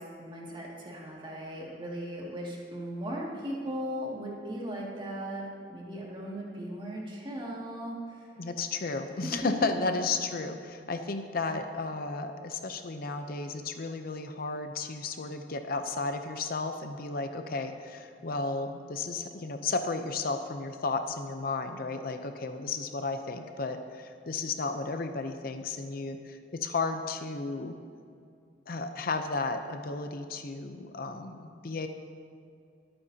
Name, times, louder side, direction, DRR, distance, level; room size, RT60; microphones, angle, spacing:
voice 1, 0.0-8.3 9.2-9.5, equal, 25° right, -4 dB, 2.2 m, -38 dB
voice 2, 8.4-27.8 28.7-31.9, left 3 dB, 55° left, 7 dB, 0.6 m, -33 dB
21.0 x 8.8 x 2.8 m, 2.4 s
head